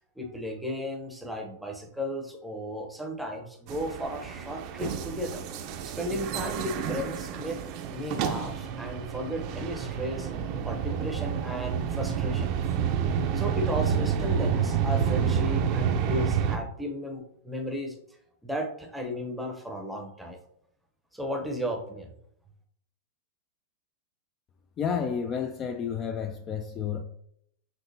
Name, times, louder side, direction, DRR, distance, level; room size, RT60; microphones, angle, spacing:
voice 1, 0.0-5.4 5.8-7.6 7.9-10.3 10.6-12.6 13.3-18.0 18.4-20.4 21.1-22.1, equal, ahead, 0.7 m, -34 dB
sound 1, 3.7-16.6, right 7 dB, 45° right, 0.5 m, -29 dB
voice 2, 24.8-27.0, left 7 dB, 30° left, 0.3 m, -31 dB
5.9 x 2.8 x 2.7 m
hypercardioid pair, 135°, 0 cm